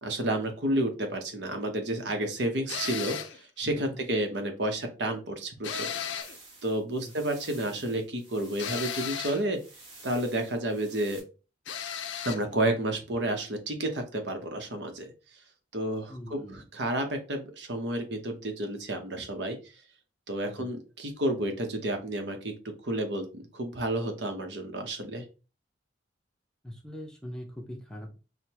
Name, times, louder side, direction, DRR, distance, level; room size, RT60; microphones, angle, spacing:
voice 1, 0.0-5.9 6.6-9.6 10.0-11.2 12.2-15.1 15.7-19.6 20.3-22.5 22.8-25.2, right 1 dB, 65° right, 5 dB, 0.9 m, -31 dB
sound 1, 2.7-3.4 5.6-6.4 8.6-9.5 11.7-12.4, left 8 dB, 80° left, 0.5 m, -35 dB
sound 2, 6.2-11.2, right 2 dB, 30° right, 1.8 m, -51 dB
voice 2, 16.1-16.6 20.4-20.7 26.6-28.2, equal, 5° left, 1 dB, 0.6 m, -42 dB
6.4 x 2.1 x 2.8 m, 0.32 s
head